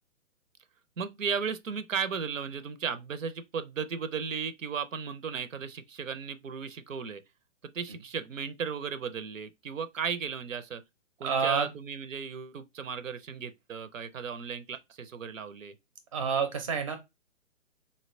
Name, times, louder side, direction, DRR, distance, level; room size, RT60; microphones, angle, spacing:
voice 1, 1.0-7.2 7.7-10.8 11.2-15.7, right 6 dB, 90° right, 0.5 m, -35 dB
voice 2, 11.2-11.7 16.1-17.0, right 6 dB, 30° right, 0.4 m, -28 dB
3.8 x 2.1 x 2.4 m
figure-of-eight pair, 125°, 38 cm